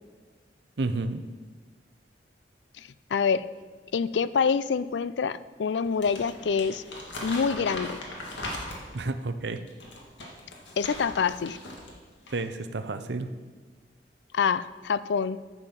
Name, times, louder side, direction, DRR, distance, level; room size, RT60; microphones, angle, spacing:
voice 1, 0.8-1.2 8.9-9.6 12.3-13.3, right 3 dB, 70° right, 10 dB, 0.7 m, -30 dB
voice 2, 2.8-3.5 3.9-6.8 7.2-8.0 10.8-11.6 14.3-15.4, left 6 dB, 75° left, 16 dB, 0.4 m, -26 dB
Crumpling crinkling, 5.8-9.1 9.7-11.9 12.2-12.5, left 1 dB, 90° left, 1.9 m, -39 dB
9.7 x 7.2 x 5.8 m, 1.4 s
head